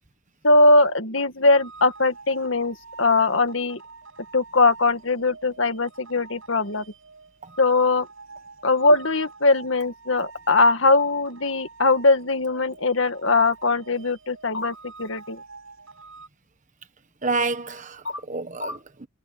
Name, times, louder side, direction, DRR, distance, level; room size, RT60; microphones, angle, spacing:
voice 1, 0.4-3.8 4.3-6.8 7.6-8.1 8.6-15.4 18.0-18.2 18.6-18.8, left 2 dB, 60° left, 2.1 m, -21 dB
sound 1, 1.5-16.3, right 4 dB, 65° right, 6.8 m, -46 dB
voice 2, 17.2-19.1, right 3 dB, 35° right, 1.4 m, -29 dB
head